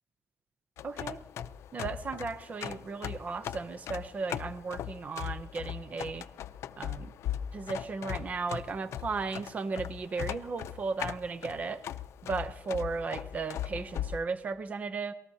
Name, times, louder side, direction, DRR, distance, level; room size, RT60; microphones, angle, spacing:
sound 1, 0.8-14.2, left 10 dB, 80° left, 0.5 m, -39 dB
voice 1, 0.8-1.2 1.7-6.3 6.8-7.1 7.5-11.8 12.2-15.1, right 4 dB, 35° right, 11 dB, 0.6 m, -35 dB
27.0 x 19.0 x 2.8 m, 0.82 s
cardioid pair, 150°, 5 cm